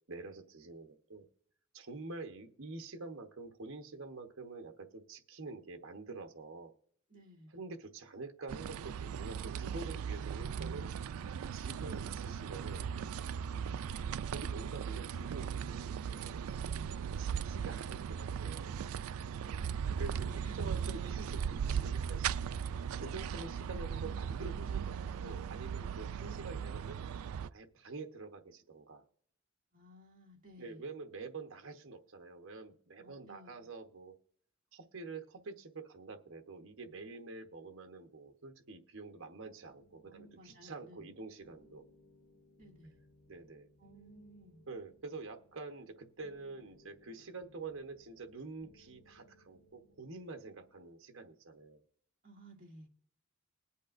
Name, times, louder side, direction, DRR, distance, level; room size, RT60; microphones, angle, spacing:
voice 1, 0.1-1.3 1.7-6.7 7.5-10.9 11.5-12.9 14.3-16.5 17.2-18.8 20.0-22.3 22.9-27.0 27.5-29.0 30.6-34.1 34.7-41.8 43.3-43.7 44.7-51.8, right 3 dB, 70° right, 1.0 m, -47 dB
voice 2, 7.1-7.6 19.4-20.8 26.2-26.6 29.7-30.9 33.0-33.7 40.0-41.1 42.6-43.0 43.8-44.6 52.2-52.9, equal, 40° right, 2.2 m, -57 dB
sound 1, 8.5-27.5, right 7 dB, 90° right, 0.4 m, -38 dB
sound 2, 39.6-50.8, left 1 dB, 65° left, 2.1 m, -65 dB
20.5 x 8.4 x 2.5 m
head